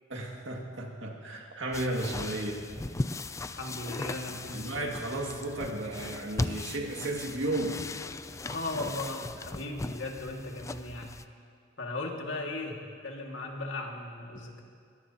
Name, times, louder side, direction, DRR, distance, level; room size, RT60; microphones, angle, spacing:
voice 1, 0.1-2.6 4.5-7.8, right 1 dB, 70° right, 0 dB, 2.1 m, -34 dB
sound 1, 1.7-11.3, left 2 dB, 15° left, 0.3 m, -38 dB
voice 2, 3.6-4.9 8.4-11.2 11.8-14.6, left 2 dB, 70° left, 0 dB, 2.1 m, -37 dB
22.5 x 17.5 x 2.9 m, 2.3 s
head